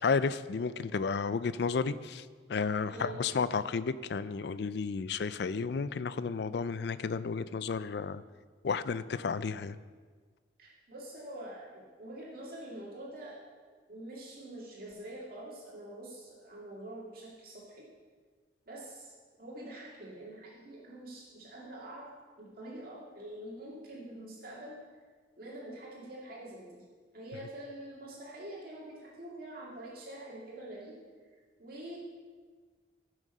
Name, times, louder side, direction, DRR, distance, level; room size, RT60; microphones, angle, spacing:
voice 1, 0.0-8.2 8.6-9.8, left 5 dB, 65° left, 0.4 m, -32 dB
voice 2, 2.9-3.2 10.6-13.4 13.9-17.9 18.7-19.1 19.4-22.1 22.4-24.8 25.4-26.8 27.1-31.0 31.6-32.0, right 1 dB, 55° right, 2.2 m, -45 dB
14.5 x 6.4 x 5.4 m
head